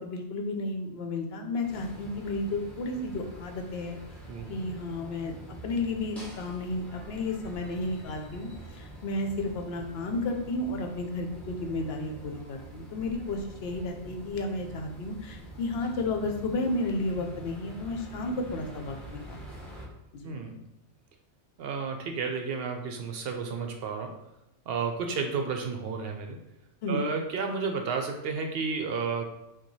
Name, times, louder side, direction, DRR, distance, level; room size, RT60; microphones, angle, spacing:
voice 1, 0.0-4.0 4.5-5.3 5.6-19.7 20.1-20.3 26.8-27.0, left 2 dB, 65° left, 3 dB, 0.8 m, -32 dB
sound 1, 1.6-19.9, right 1 dB, ahead, 1.1 m, -46 dB
voice 2, 4.3-4.7 20.2-20.6 21.6-24.2 24.7-26.4 26.9-29.2, right 5 dB, 65° right, 4 dB, 0.7 m, -32 dB
4.6 x 2.3 x 4.0 m, 0.90 s
omnidirectional pair, 1.2 m